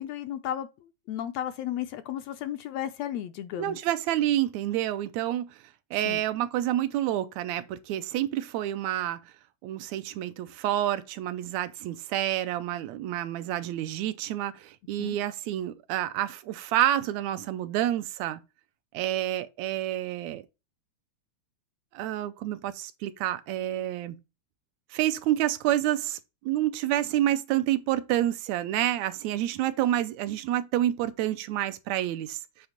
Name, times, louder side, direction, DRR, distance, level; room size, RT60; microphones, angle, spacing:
voice 1, 0.0-3.8 6.0-6.2 15.0-15.2, left 11 dB, 80° left, 1.6 m, -34 dB
voice 2, 3.6-5.5 5.9-9.2 9.6-18.4 18.9-20.4 21.9-24.2 24.9-26.2 26.4-32.4, right 13 dB, 80° right, 1.9 m, -28 dB
8.3 x 3.5 x 6.5 m
omnidirectional pair, 3.3 m